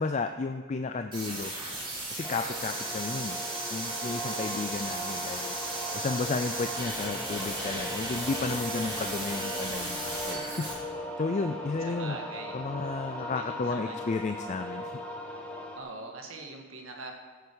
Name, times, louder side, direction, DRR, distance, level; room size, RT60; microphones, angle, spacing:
voice 1, 0.0-1.5 2.1-3.4 3.7-5.5 5.9-10.7 11.2-12.2 12.5-14.9, left 3 dB, 35° left, 7 dB, 0.4 m, -33 dB
sound 1, 1.1-10.7, right 1 dB, 25° right, 3.6 m, -36 dB
sound 2, 2.2-15.8, equal, 5° left, 1.1 m, -38 dB
voice 2, 11.8-12.6 13.2-14.0 15.7-17.1, right 3 dB, 75° right, 2 dB, 1.7 m, -42 dB
15.5 x 8.0 x 4.7 m, 1.4 s
head